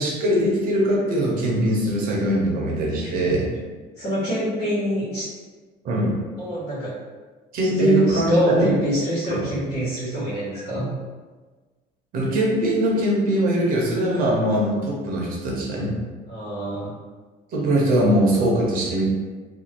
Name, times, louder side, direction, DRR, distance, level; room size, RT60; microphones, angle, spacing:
voice 1, 0.0-3.5 5.8-6.1 7.5-8.7 9.3-9.4 12.1-15.9 17.5-19.1, right 1 dB, 55° right, -3 dB, 0.7 m, -21 dB
voice 2, 4.0-5.3 6.4-6.9 7.8-10.9 16.3-16.9, equal, 70° left, -10 dB, 1.3 m, -25 dB
2.5 x 2.3 x 2.8 m, 1.4 s
cardioid pair, 160°, 18 cm